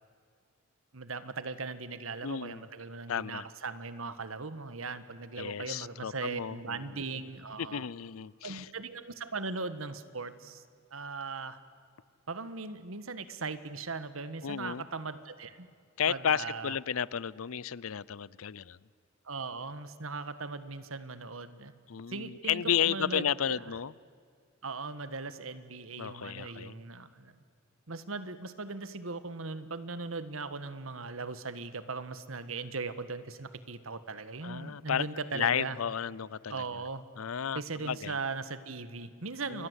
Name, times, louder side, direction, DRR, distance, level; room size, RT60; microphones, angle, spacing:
voice 1, 0.9-7.8 8.4-10.6 10.9-11.6 12.3-15.7 16.1-16.8 19.2-21.7 22.1-23.7 24.6-27.3 27.9-35.8 36.5-37.0 37.5-39.7, right 4 dB, 75° right, 13 dB, 1.5 m, -39 dB
voice 2, 2.2-2.6 3.1-3.4 5.4-7.0 7.6-8.7 14.4-14.8 16.0-18.8 21.9-23.9 26.0-26.8 34.4-35.0 35.3-36.6 37.2-38.2 39.5-39.7, left 8 dB, 80° left, 22 dB, 0.6 m, -33 dB
28.5 x 22.0 x 8.2 m, 2.2 s
head